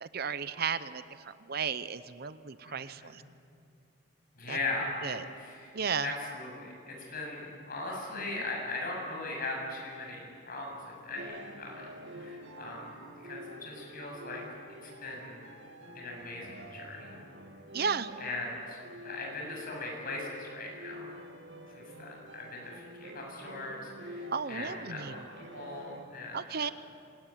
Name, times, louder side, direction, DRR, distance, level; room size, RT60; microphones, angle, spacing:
voice 1, 0.0-3.2 4.5-4.6 5.0-5.2 5.7-6.1 8.1-8.4 17.7-18.1 24.3-25.1 26.3-26.7, right 6 dB, 50° right, 13 dB, 0.7 m, -34 dB
voice 2, 2.6-3.3 4.4-5.7 6.0-11.9 12.1-12.9 13.2-14.4 14.8-15.5 15.9-17.2 18.2-18.8 19.0-21.1 21.7-25.2 25.5-26.7, left 2 dB, 45° left, -1 dB, 7.7 m, -39 dB
sound 1, 11.2-26.0, equal, 65° right, 2.2 m, -48 dB
25.5 x 19.5 x 9.2 m, 2.5 s
head